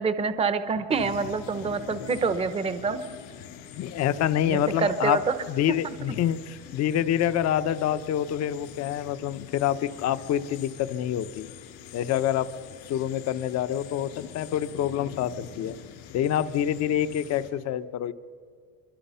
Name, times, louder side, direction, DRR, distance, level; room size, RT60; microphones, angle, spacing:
voice 1, 0.0-3.0 4.5-5.3 5.8-5.9, right 5 dB, 15° right, 11 dB, 0.8 m, -26 dB
sound 1, 0.9-17.5, left 9 dB, 80° left, 4.0 m, -44 dB
voice 2, 3.7-5.2 5.5-11.5 11.9-12.5 12.8-15.8 16.1-18.1, left 11 dB, 45° left, 12 dB, 0.9 m, -27 dB
25.0 x 23.5 x 5.6 m, 2.1 s
cardioid pair, 150°, 37 cm